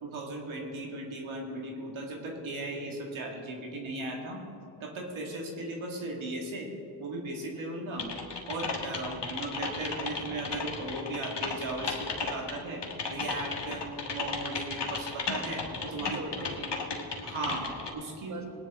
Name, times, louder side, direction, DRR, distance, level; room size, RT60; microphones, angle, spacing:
voice 1, 0.0-4.4 4.8-6.7 7.0-8.1 8.5-12.8 13.1-13.8 14.1-15.6 15.9-16.2 17.2-18.5, right 2 dB, 85° right, -1 dB, 2.2 m, -37 dB
Typing, 8.0-17.9, left 4 dB, 60° left, 1.7 m, -35 dB
voice 2, 15.8-17.5 18.3-18.5, right 2 dB, 35° right, 3 dB, 1.6 m, -44 dB
18.5 x 10.0 x 3.7 m, 2.7 s
cardioid pair, 45°, 47 cm